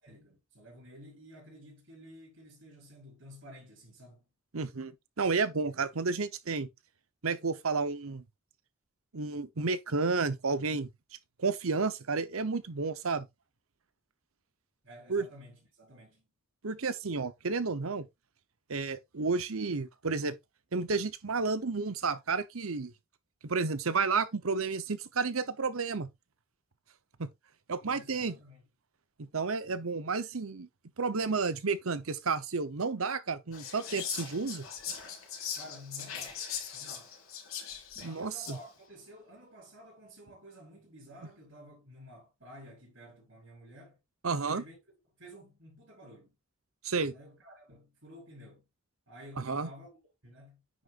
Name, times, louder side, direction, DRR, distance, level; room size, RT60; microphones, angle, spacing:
voice 1, 0.0-4.2 14.8-16.3 27.8-28.6 35.5-36.4 36.7-37.1 38.0-44.0 44.3-44.8 45.2-46.4 47.1-48.7 49.1-50.8, equal, 65° right, 5.1 m, -52 dB
voice 2, 4.5-4.9 5.2-6.7 7.2-8.2 9.1-10.9 11.4-13.3 15.1-15.3 16.6-18.1 18.7-20.4 20.7-22.9 23.4-26.1 27.2-27.3 27.7-28.3 29.3-30.7 31.0-34.6 38.0-38.6 44.2-44.6 46.8-47.1 49.4-49.7, right 4 dB, 90° right, 0.9 m, -31 dB
Whispering, 33.5-38.7, left 8 dB, 85° left, 3.9 m, -40 dB
9.5 x 6.5 x 2.5 m
head